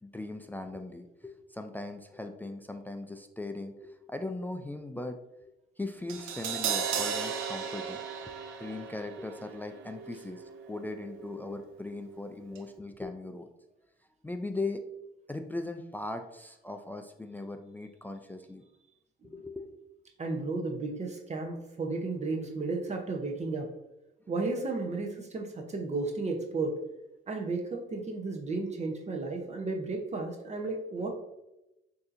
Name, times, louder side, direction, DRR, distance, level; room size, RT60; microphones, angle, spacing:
voice 1, 0.0-13.5 14.2-14.8 15.3-18.6 19.3-19.8, left 2 dB, 10° left, 6 dB, 0.3 m, -39 dB
Crash cymbal, 6.1-12.3 12.5-12.7, right 7 dB, 90° right, 0.6 m, -36 dB
voice 2, 20.2-23.7 24.3-26.8 27.3-31.1, right 3 dB, 35° right, 1 dB, 0.8 m, -33 dB
6.4 x 2.8 x 2.6 m, 0.91 s
cardioid pair, 90°, 20 cm